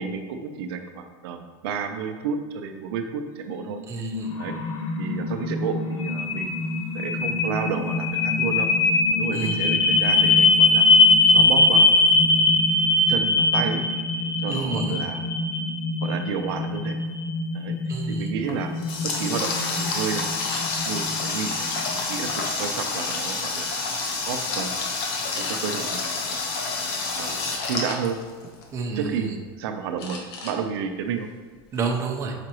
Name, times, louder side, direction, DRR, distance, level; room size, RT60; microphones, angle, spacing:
voice 1, 0.0-3.8 4.4-4.5 5.0-6.6 6.9-8.7 9.1-10.8 11.3-11.9 12.4-12.5 13.1-13.8 14.2-15.2 16.0-17.0 17.5-18.7 19.0-20.4 20.8-23.7 24.3-24.8 25.4-26.4 27.2-28.2 28.9-31.3, right 6 dB, 80° right, 6 dB, 0.6 m, -31 dB
sound 1, 3.6-21.7, left 2 dB, 40° left, 0.6 m, -22 dB
voice 2, 3.9-4.3 9.3-9.7 14.5-15.0 17.9-18.3 28.7-29.3 31.7-32.3, right 4 dB, 25° right, 1 dB, 0.8 m, -29 dB
Water tap faucet, 18.4-28.6, left 3 dB, 60° left, 1.1 m, -28 dB
sound 2, 20.4-20.6 21.2-22.2 23.0-23.5 24.1-24.3 24.7-24.8 25.3-25.6 27.5-28.2 28.7-29.5 30.0-30.6 30.9-31.1 31.5-31.9, left 3 dB, 85° left, 1.3 m, -39 dB
7.6 x 5.1 x 3.0 m, 1.5 s
supercardioid pair, 150°, 13 cm